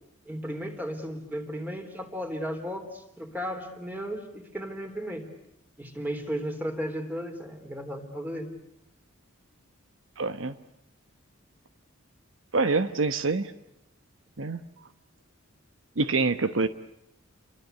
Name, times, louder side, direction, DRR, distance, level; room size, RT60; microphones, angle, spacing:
voice 1, 0.3-5.3 5.8-8.5, equal, 10° right, 6 dB, 3.6 m, -35 dB
voice 2, 10.2-10.6 12.5-13.5 14.4-14.6 16.0-16.7, right 3 dB, 70° right, 11 dB, 1.0 m, -25 dB
30.0 x 23.0 x 8.2 m, 0.80 s
head